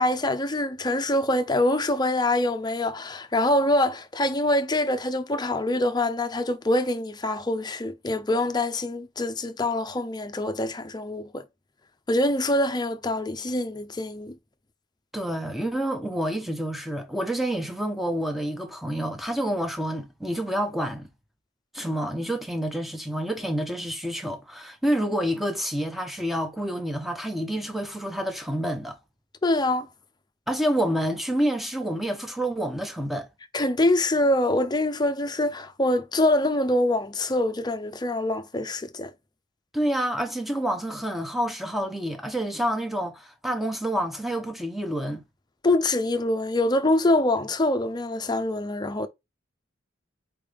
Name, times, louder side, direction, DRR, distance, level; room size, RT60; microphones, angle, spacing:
voice 1, 0.0-11.4 12.1-14.4 29.4-29.9 33.5-39.1 45.6-49.1, left 1 dB, 20° left, 0.6 m, -24 dB
voice 2, 15.1-21.1 21.7-29.0 30.5-33.3 39.7-45.2, right 1 dB, ahead, 0.9 m, -28 dB
4.6 x 3.4 x 3.4 m
head